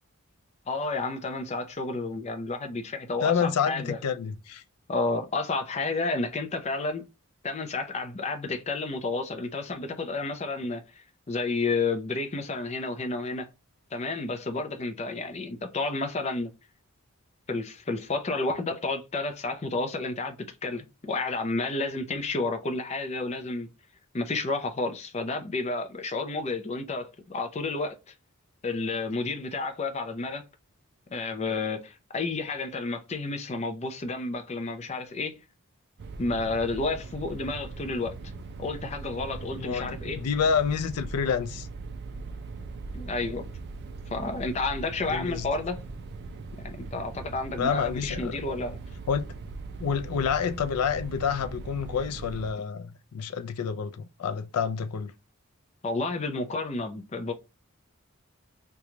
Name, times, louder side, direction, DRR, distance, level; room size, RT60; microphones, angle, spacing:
voice 1, 0.7-4.0 4.9-7.0 7.4-13.5 13.9-16.5 17.5-20.4 20.6-23.7 24.1-28.0 28.6-30.4 31.1-35.3 36.2-38.1 38.6-40.2 42.9-43.5 44.1-45.8 46.6-48.8 55.8-57.3, left 3 dB, 30° left, 0.5 m, -31 dB
voice 2, 3.2-4.6 39.6-41.7 45.1-45.5 47.6-48.4 49.1-49.3 49.8-55.1, left 6 dB, 90° left, 0.4 m, -28 dB
sound 1, 36.0-52.5, right 3 dB, 50° right, 0.4 m, -40 dB
3.0 x 2.3 x 3.7 m
head